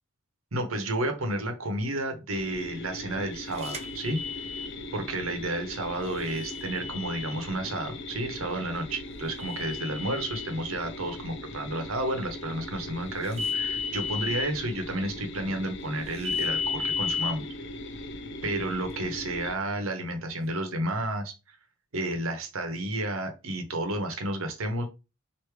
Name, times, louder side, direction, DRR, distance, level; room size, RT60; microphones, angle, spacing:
voice 1, 0.5-4.2 4.9-17.4 18.4-21.6 21.9-24.9, right 1 dB, 70° right, 5 dB, 1.0 m, -31 dB
sound 1, 2.3-19.5, left 2 dB, 55° left, 0.6 m, -40 dB
sound 2, 3.6-4.7 6.3-7.4 9.4-10.5 13.3-14.5 16.2-17.3, left 6 dB, 30° right, 0.8 m, -32 dB
4.7 x 2.8 x 3.2 m, 0.28 s
head